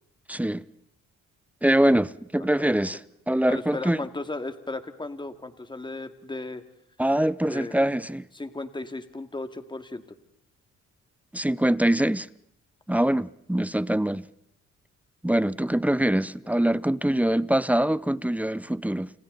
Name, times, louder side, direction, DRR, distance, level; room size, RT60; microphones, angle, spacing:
voice 1, 0.3-0.7 1.6-3.0 3.3-4.0 7.0-8.2 11.3-12.3 12.9-14.3 15.2-19.1, right 1 dB, 5° right, 0.8 m, -23 dB
voice 2, 2.4-2.7 3.5-6.6 7.4-7.9 8.3-10.0 16.4-16.6, left 2 dB, 15° left, 2.4 m, -36 dB
29.5 x 28.0 x 4.1 m
cardioid pair, 90°, 30 cm